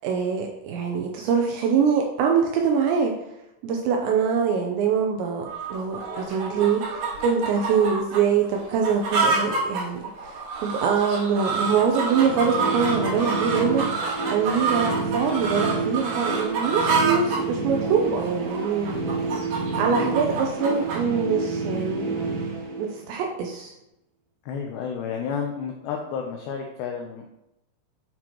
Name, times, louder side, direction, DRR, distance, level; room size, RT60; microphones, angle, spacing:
voice 1, 0.0-3.1 3.6-18.9 19.8-22.1 22.8-23.7, right 6 dB, 80° right, 2 dB, 2.6 m, -24 dB
sound 1, 5.5-21.0, right 4 dB, 60° right, 4.6 m, -28 dB
sound 2, 11.4-23.4, right 3 dB, 40° right, 2.8 m, -29 dB
voice 2, 19.9-20.2 24.4-27.3, left 6 dB, 85° left, 2 dB, 2.4 m, -31 dB
9.4 x 6.1 x 3.0 m, 0.87 s
omnidirectional pair, 5.8 m